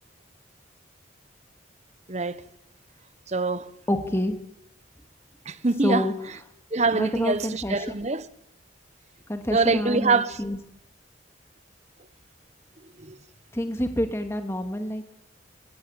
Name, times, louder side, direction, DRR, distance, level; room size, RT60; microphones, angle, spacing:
voice 1, 2.1-2.4 3.3-3.7 5.5-6.1 6.7-8.3 9.5-10.4 13.0-13.2, right 3 dB, 35° right, 1.1 m, -24 dB
voice 2, 3.9-4.4 5.8-6.1 6.9-7.8 9.3-10.6 13.5-15.0, left 1 dB, 15° left, 2.4 m, -27 dB
27.5 x 16.5 x 9.0 m
head